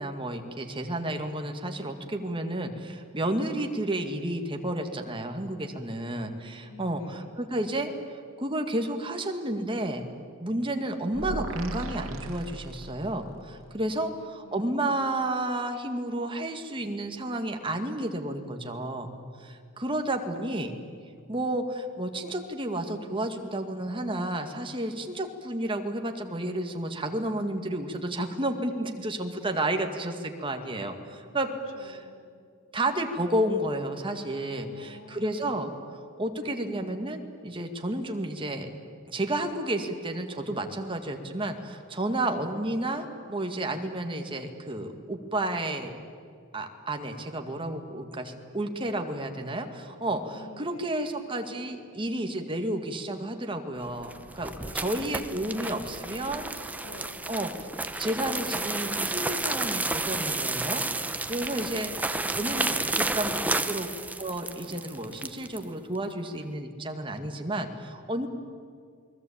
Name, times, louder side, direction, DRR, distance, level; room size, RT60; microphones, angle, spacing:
voice 1, 0.0-7.9 8.4-10.1 10.4-19.1 19.4-20.7 21.3-31.5 31.9-32.0 32.7-35.7 36.2-38.7 39.1-45.9 46.5-56.4 57.3-57.5 58.0-63.4 63.7-63.9 64.2-68.3, right 1 dB, 25° right, 5 dB, 2.0 m, -31 dB
voice 2, 6.6-7.3 14.0-14.8 19.7-19.8 31.7-32.2 34.6-36.1 36.3-36.9 50.3-50.9 54.5-55.7 56.0-57.3 63.3-63.7, left 2 dB, 70° left, 5 dB, 2.7 m, -51 dB
sound 1, 11.1-13.3, right 2 dB, 85° right, 2.0 m, -36 dB
sound 2, 53.9-65.6, right 2 dB, 10° right, 0.9 m, -31 dB
28.5 x 20.5 x 8.7 m, 2.3 s
head